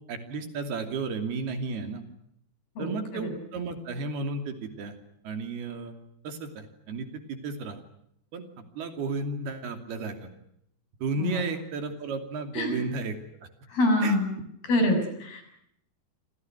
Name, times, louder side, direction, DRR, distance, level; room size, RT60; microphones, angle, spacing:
voice 1, 0.1-2.0 2.8-5.0 5.2-5.9 6.2-7.8 8.3-8.4 8.8-10.3 11.0-13.2 14.0-14.2, right 4 dB, 70° right, 7 dB, 4.7 m, -33 dB
voice 2, 2.8-3.3 11.2-11.4 12.6-12.8 13.7-14.3 14.7-15.4, left 1 dB, 60° left, 6 dB, 9.0 m, -25 dB
28.0 x 27.5 x 6.3 m, 0.74 s
omnidirectional pair, 4.8 m